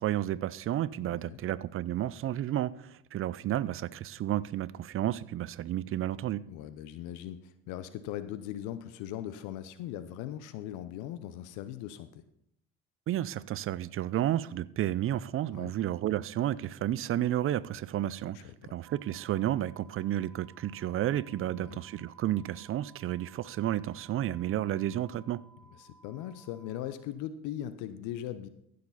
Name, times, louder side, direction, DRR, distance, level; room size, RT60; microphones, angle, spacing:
voice 1, 0.0-6.4 13.1-25.4, right 12 dB, 45° right, 0.5 m, -31 dB
voice 2, 1.0-1.4 6.5-12.2 15.5-15.7 18.3-18.7 21.5-21.8 25.7-28.5, left 11 dB, 70° left, 0.7 m, -40 dB
sound 1, 18.8-26.8, right 3 dB, 70° right, 1.8 m, -60 dB
15.0 x 6.7 x 4.1 m
hypercardioid pair, 70°, 30 cm